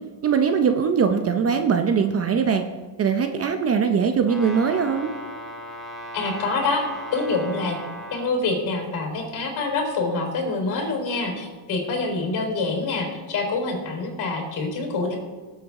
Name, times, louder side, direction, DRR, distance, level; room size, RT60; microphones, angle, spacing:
voice 1, 0.2-2.6 3.0-5.1, right 6 dB, 30° right, 6 dB, 0.7 m, -21 dB
Brass instrument, 4.2-8.3, equal, ahead, 3.5 m, -37 dB
voice 2, 6.1-7.8 8.1-15.2, left 3 dB, 50° left, 2 dB, 4.2 m, -26 dB
18.0 x 8.1 x 3.7 m, 1.3 s
cardioid pair, 140°, 48 cm